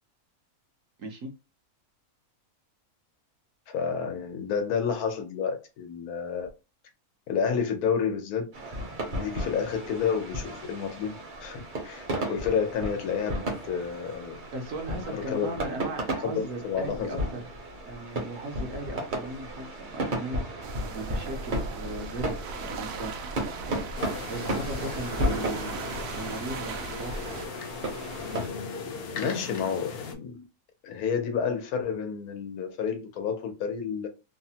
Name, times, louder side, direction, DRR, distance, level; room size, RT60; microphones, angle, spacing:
voice 1, 1.0-1.3 14.5-17.4 17.9-23.8 24.3-27.3, right 2 dB, 65° right, 1.0 m, -38 dB
voice 2, 3.7-6.5 7.3-8.5 9.1-14.4 15.1-15.5 16.2-17.2 29.2-30.4 30.8-34.1, left 6 dB, 90° left, 1.2 m, -30 dB
sound 1, 8.5-28.5, right 1 dB, 45° right, 0.7 m, -34 dB
sound 2, 20.6-27.5, right 4 dB, 85° right, 1.1 m, -37 dB
sound 3, 24.0-30.1, left 5 dB, 65° left, 0.5 m, -38 dB
3.1 x 2.0 x 2.7 m
omnidirectional pair, 1.6 m